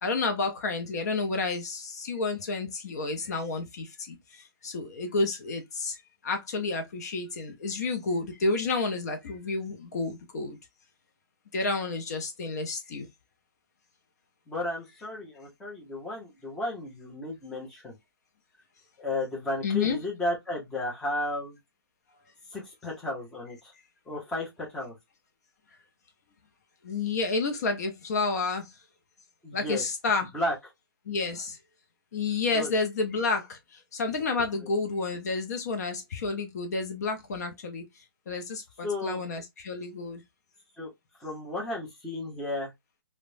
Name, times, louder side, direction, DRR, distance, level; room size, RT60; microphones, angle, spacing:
voice 1, 0.0-6.0 6.2-10.6 11.5-13.1 19.6-20.0 26.8-28.7 29.5-30.3 31.1-31.6 32.1-37.9 38.3-40.2, left 3 dB, 45° left, 0.6 m, -30 dB
voice 2, 14.5-17.9 19.0-21.6 22.5-23.6 24.1-24.9 29.4-29.8 30.3-30.5 32.5-32.7 34.6-34.7 38.8-39.2 40.8-40.9 41.2-42.7, left 1 dB, 5° left, 0.7 m, -33 dB
2.9 x 2.1 x 2.5 m
hypercardioid pair, 150°, 12 cm